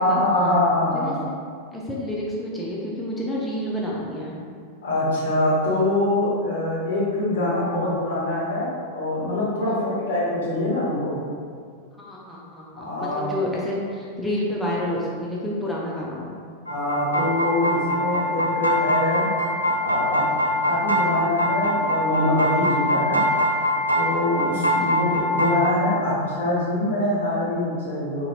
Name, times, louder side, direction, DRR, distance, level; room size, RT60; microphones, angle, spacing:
voice 1, 0.0-1.1 4.8-11.2 12.8-13.3 16.7-19.3 19.8-20.3 20.7-23.2 23.9-28.3, left 1 dB, 65° left, -8 dB, 1.1 m, -24 dB
voice 2, 0.9-4.4 9.6-9.8 12.0-16.3 24.8-24.9, left 1 dB, 5° left, -5 dB, 0.5 m, -29 dB
sound 1, 16.7-25.8, equal, 90° left, 0.4 m, -23 dB
4.0 x 2.6 x 2.4 m, 2.1 s
figure-of-eight pair, 90°, 0 cm